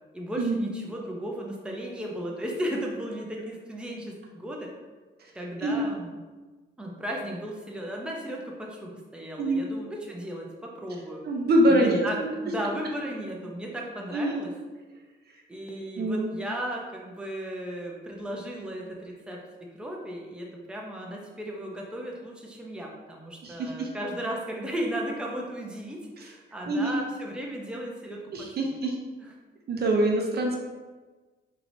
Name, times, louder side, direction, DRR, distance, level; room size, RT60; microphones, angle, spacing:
voice 1, 0.1-4.7 5.3-6.2 6.8-11.2 11.7-14.5 15.5-19.4 19.7-28.6, right 1 dB, 5° right, -2 dB, 0.7 m, -35 dB
voice 2, 11.2-12.0 14.1-14.4 16.0-16.3 23.4-23.9 26.7-27.0 28.3-29.0 29.7-30.6, right 1 dB, 55° right, 1 dB, 0.7 m, -24 dB
4.7 x 3.1 x 2.7 m, 1.3 s
cardioid pair, 90°, 20 cm